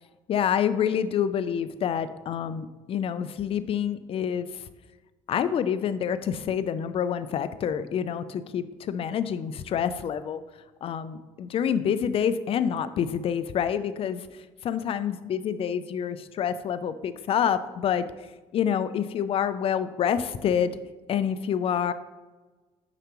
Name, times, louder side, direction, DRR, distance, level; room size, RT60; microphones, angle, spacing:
voice 1, 0.3-4.5 5.3-10.4 10.8-14.3 14.6-18.1 18.5-20.7 21.1-21.9, left 8 dB, 50° left, 12 dB, 0.4 m, -27 dB
6.6 x 5.0 x 3.0 m, 1.2 s
cardioid pair, 100°, 13 cm